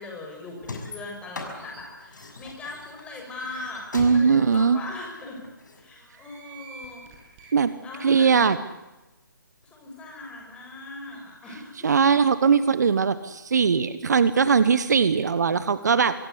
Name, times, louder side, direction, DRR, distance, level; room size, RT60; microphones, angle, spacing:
voice 1, 0.0-3.8 4.1-5.4 5.8-7.1 7.4-7.5 7.8-8.4 9.6-11.9, left 2 dB, 10° left, 0 dB, 6.7 m, -39 dB
sound 1, 0.6-5.8, left 3 dB, 60° left, 6.5 m, -39 dB
sound 2, 1.3-1.8 2.4-2.5 2.8-2.9 3.4-3.8 4.5-4.6 4.9-5.0 6.0-7.5, right 5 dB, 20° right, 8.0 m, -49 dB
voice 2, 3.9-4.8 7.5-7.7 8.0-8.6 11.8-16.1, right 6 dB, 55° right, 14 dB, 1.3 m, -20 dB
25.5 x 22.5 x 8.3 m, 1.0 s
figure-of-eight pair, 145°, 11 cm